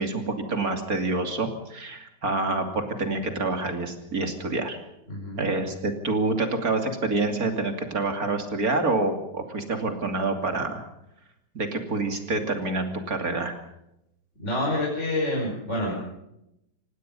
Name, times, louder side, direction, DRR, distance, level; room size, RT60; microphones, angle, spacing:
voice 1, 0.0-4.8 5.4-10.8 11.5-13.6, right 3 dB, 45° right, 5 dB, 3.2 m, -27 dB
voice 2, 5.1-5.6 14.4-15.9, left 1 dB, 35° left, -3 dB, 6.0 m, -27 dB
26.0 x 19.0 x 5.5 m, 0.84 s
omnidirectional pair, 2.1 m